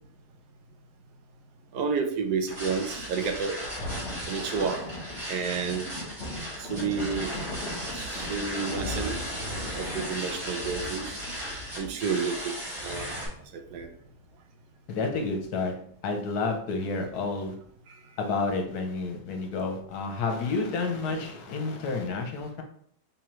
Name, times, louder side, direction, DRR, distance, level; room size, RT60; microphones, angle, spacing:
voice 1, 1.7-3.5 4.3-4.9 5.3-5.9 6.6-7.3 7.9-9.2 9.7-11.2 11.8-12.4 12.8-13.1 13.5-13.9, right 5 dB, 75° right, 5 dB, 1.1 m, -30 dB
sound 1, 2.5-13.3, equal, 55° right, 2.1 m, -37 dB
Thunder, 3.3-14.3 14.9-15.0, left 1 dB, 45° left, 1.4 m, -39 dB
voice 2, 14.9-15.7 16.0-17.5 18.2-22.6, left 3 dB, 75° left, 3 dB, 1.2 m, -30 dB
3.6 x 3.0 x 3.0 m, 0.64 s
omnidirectional pair, 1.8 m